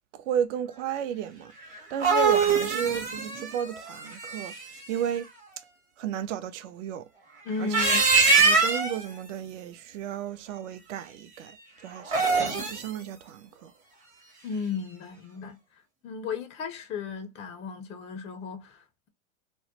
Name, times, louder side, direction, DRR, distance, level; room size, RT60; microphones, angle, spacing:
voice 1, 0.1-5.3 6.0-7.1 7.6-7.8 8.3-13.7, right 9 dB, 60° right, 0.5 m, -33 dB
sound 1, 1.7-4.8 7.5-9.0 12.0-12.9, right 4 dB, 20° right, 0.7 m, -23 dB
voice 2, 7.4-8.1 14.4-15.6 16.0-19.1, left 5 dB, 15° left, 0.3 m, -35 dB
2.2 x 2.0 x 2.8 m
hypercardioid pair, 110°, 41 cm